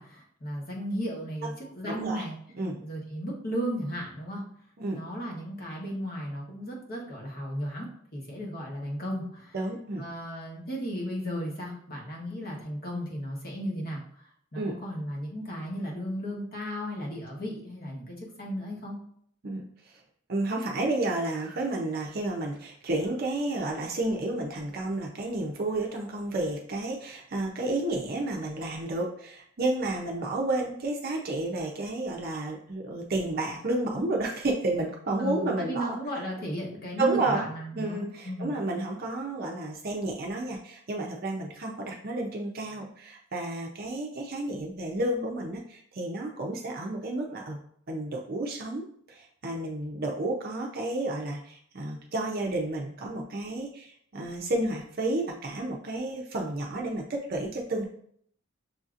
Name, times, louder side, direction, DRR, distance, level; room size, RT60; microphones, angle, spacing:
voice 1, 0.0-2.3 2.8-4.4 4.9-9.5 10.0-14.0 14.5-19.0 35.2-38.5, equal, 45° left, -3 dB, 1.1 m, -35 dB
voice 2, 1.9-2.2 2.5-2.8 4.8-5.0 9.5-10.1 14.5-14.8 19.4-19.9 20.3-36.0 37.0-37.5 37.8-47.6 47.9-57.9, right 2 dB, 45° right, 0 dB, 0.5 m, -31 dB
6.3 x 2.7 x 2.5 m, 0.64 s
head